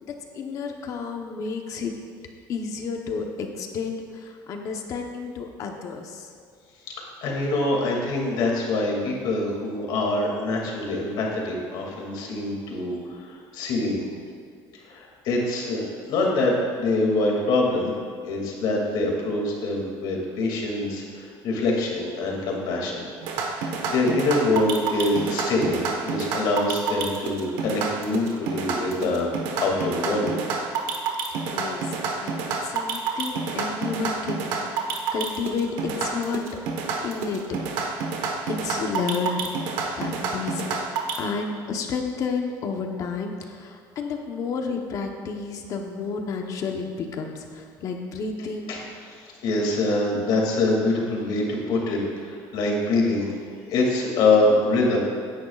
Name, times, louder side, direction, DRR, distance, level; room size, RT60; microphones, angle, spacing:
voice 1, 0.0-1.9 2.5-6.3 31.5-32.4 32.6-35.7 36.0-36.4 37.0-37.6 38.5-40.8 41.2-48.9, left 5 dB, 40° left, 3 dB, 1.0 m, -31 dB
voice 2, 7.0-14.1 14.8-18.0 18.2-23.1 23.4-30.3 39.9-40.0 48.7-53.3 53.7-55.0, left 2 dB, 55° left, -1 dB, 2.4 m, -25 dB
sound 1, 23.2-41.2, right 5 dB, 70° right, 1.3 m, -28 dB
16.5 x 10.5 x 2.4 m, 2.2 s
cardioid pair, 180°, 9 cm